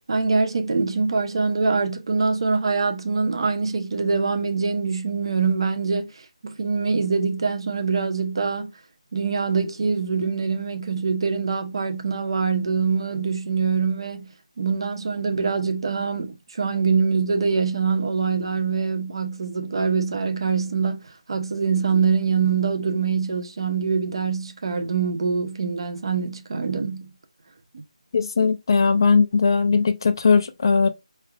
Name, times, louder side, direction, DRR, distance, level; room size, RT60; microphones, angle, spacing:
voice 1, 0.1-8.7 9.1-14.3 14.6-21.0 21.3-27.1, right 5 dB, 45° right, 0.8 m, -24 dB
voice 2, 28.1-30.9, left 5 dB, 40° left, 0.4 m, -19 dB
4.7 x 3.4 x 2.3 m
figure-of-eight pair, 165°, 4 cm